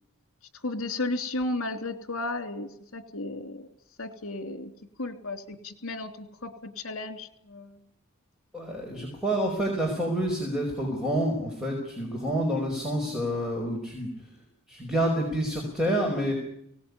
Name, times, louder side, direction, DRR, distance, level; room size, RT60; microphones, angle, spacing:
voice 1, 0.5-3.7 4.0-4.7 5.0-7.8, left 2 dB, 65° left, 9 dB, 3.3 m, -34 dB
voice 2, 8.5-14.1 14.7-16.3, right 1 dB, 5° right, -1 dB, 5.2 m, -28 dB
23.5 x 18.5 x 9.7 m, 0.73 s
head